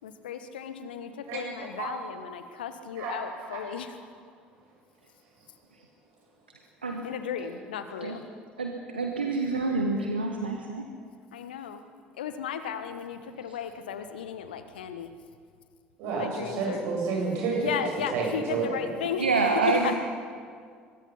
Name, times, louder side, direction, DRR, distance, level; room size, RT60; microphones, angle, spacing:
voice 1, 0.0-3.9 7.0-8.2 11.3-11.8 12.2-15.1 16.2-16.8 17.6-19.2 19.7-19.9, left 8 dB, 75° left, 9 dB, 1.3 m, -35 dB
voice 2, 1.2-1.9 2.9-3.7 16.0-17.8 18.1-18.9, right 4 dB, 60° right, -2 dB, 8.0 m, -31 dB
voice 3, 8.6-10.9 13.5-13.6 19.2-20.0, right 3 dB, 85° right, 2 dB, 1.3 m, -27 dB
23.5 x 21.0 x 5.7 m, 2.1 s
figure-of-eight pair, 60°, 5 cm